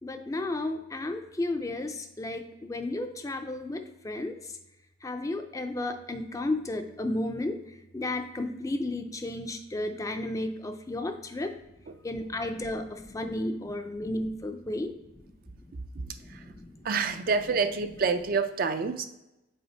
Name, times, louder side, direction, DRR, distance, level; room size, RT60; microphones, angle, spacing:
voice 1, 0.0-4.6 5.0-11.6 12.0-14.9 15.2-15.7 16.0-16.9, left 2 dB, 15° left, 7 dB, 0.4 m, -33 dB
voice 2, 16.8-19.1, right 5 dB, 50° right, 9 dB, 0.4 m, -27 dB
5.6 x 4.3 x 4.3 m, 0.93 s
head